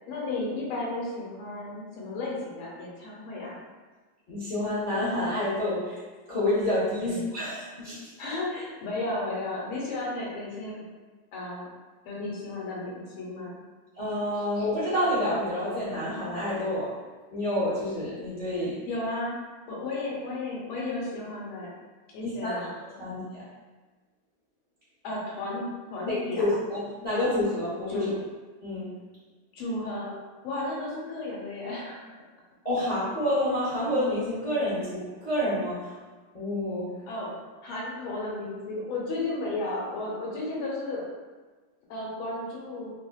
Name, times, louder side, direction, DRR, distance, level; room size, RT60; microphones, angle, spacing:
voice 1, 0.1-3.6 7.1-7.3 8.2-10.8 11.3-11.6 12.0-13.5 18.9-19.3 19.7-21.8 22.1-22.7 25.0-26.5 27.9-28.1 29.5-30.1 30.4-32.1 32.8-32.9 37.1-37.3 37.6-41.0 41.9-42.9, left 2 dB, 85° left, -4 dB, 1.7 m, -33 dB
voice 2, 4.3-6.0 6.3-8.1 14.0-16.9 17.3-18.8 22.2-22.7 23.0-23.4 26.1-28.1 28.6-28.9 32.6-36.0 36.3-36.9, left 1 dB, 40° left, -11 dB, 0.5 m, -28 dB
3.6 x 2.8 x 2.3 m, 1.3 s
omnidirectional pair, 2.2 m